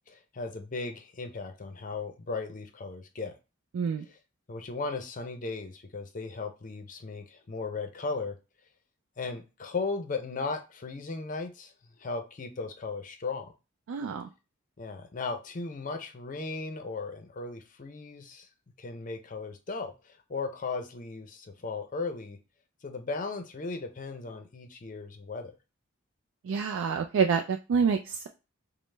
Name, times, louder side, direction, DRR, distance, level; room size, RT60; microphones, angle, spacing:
voice 1, 0.1-3.3 4.0-4.2 4.5-8.3 9.2-11.7 12.0-13.5 14.8-18.5 18.8-22.4 22.8-25.5, left 4 dB, 40° left, 0.5 m, -36 dB
voice 2, 3.7-4.0 13.9-14.3 26.5-28.3, right 6 dB, 80° right, 0.3 m, -27 dB
5.1 x 2.1 x 3.2 m
head